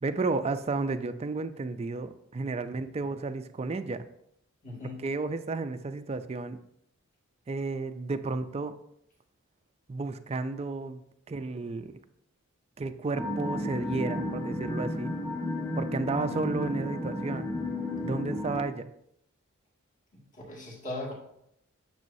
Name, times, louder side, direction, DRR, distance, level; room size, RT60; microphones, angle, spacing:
voice 1, 0.0-4.0 5.0-6.6 7.5-8.7 9.9-11.0 11.3-12.0 12.8-15.1 15.8-17.5 18.0-18.9, right 3 dB, 30° right, 9 dB, 0.4 m, -32 dB
voice 2, 4.6-5.0 20.1-21.1, left 2 dB, 35° left, -3 dB, 2.0 m, -39 dB
sound 1, 13.1-18.6, left 1 dB, 15° left, 1.3 m, -33 dB
9.3 x 6.9 x 2.7 m, 0.73 s
head